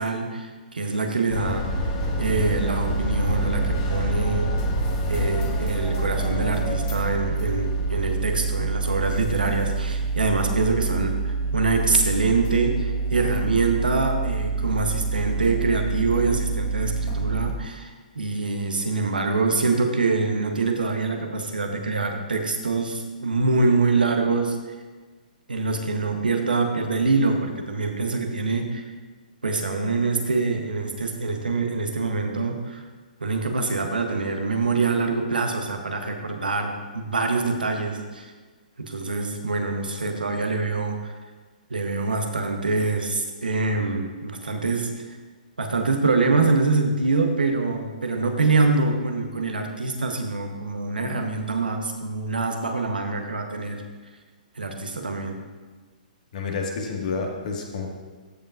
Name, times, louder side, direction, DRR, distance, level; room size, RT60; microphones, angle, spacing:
voice 1, 0.0-1.7 2.2-4.5 5.1-24.6 25.5-28.8 29.4-32.8 33.2-38.3 38.8-41.0 41.7-44.9 45.6-53.8 54.6-55.4, right 3 dB, 85° right, 4 dB, 1.0 m, -25 dB
sound 1, 1.3-17.5, right 3 dB, 40° left, 1.5 m, -26 dB
voice 2, 56.3-57.9, left 4 dB, 60° left, 1 dB, 1.7 m, -29 dB
14.0 x 5.4 x 2.5 m, 1.4 s
hypercardioid pair, 130°, 5 cm